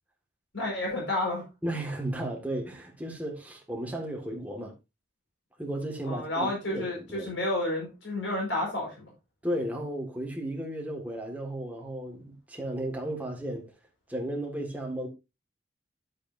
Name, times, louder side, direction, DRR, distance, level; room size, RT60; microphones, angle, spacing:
voice 1, 0.5-1.5 6.0-9.1, left 1 dB, 75° left, 4.9 m, -30 dB
voice 2, 1.6-4.7 5.6-7.3 9.4-13.6 14.1-15.1, right 1 dB, 10° right, 1.9 m, -34 dB
10.0 x 8.2 x 2.7 m
head